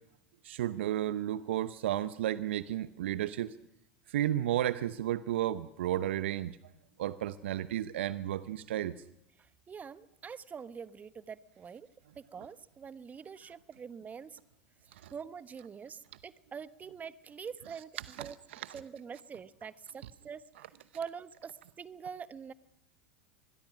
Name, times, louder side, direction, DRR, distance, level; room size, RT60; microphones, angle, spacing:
voice 1, 0.4-3.5 4.1-6.6 7.0-8.9 15.0-15.1 18.2-18.6, right 12 dB, 70° right, 15 dB, 0.8 m, -33 dB
voice 2, 9.4-11.9 12.2-14.4 14.8-17.9 18.2-18.3 18.7-20.4 20.9-22.5, right 6 dB, 25° right, 15 dB, 1.2 m, -45 dB
26.0 x 21.0 x 6.2 m, 0.83 s
hypercardioid pair, 85°, 6 cm